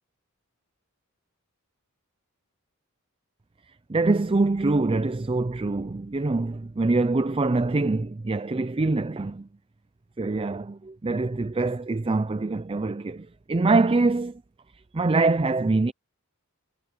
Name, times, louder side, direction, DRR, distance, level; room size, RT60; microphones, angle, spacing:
voice 1, 3.9-9.5 10.2-14.4 14.9-15.9, right 3 dB, 25° right, 0.4 m, -24 dB
head